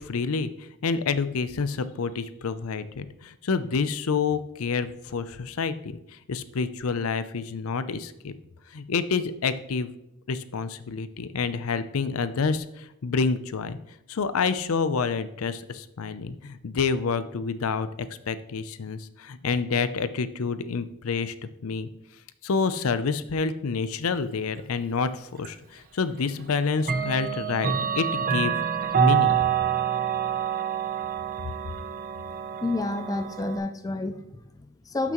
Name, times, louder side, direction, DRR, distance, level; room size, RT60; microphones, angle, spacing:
voice 1, 0.0-6.0 6.3-8.3 8.7-9.9 10.3-13.8 14.1-21.3 21.6-21.9 22.4-28.5 29.0-29.4, left 5 dB, 75° left, 13 dB, 0.5 m, -28 dB
Clock, 25.4-25.5 26.8-33.6, right 8 dB, 40° right, 0.7 m, -26 dB
voice 2, 32.6-35.1, left 2 dB, 15° left, 8 dB, 0.4 m, -30 dB
12.0 x 6.0 x 3.0 m, 0.82 s
head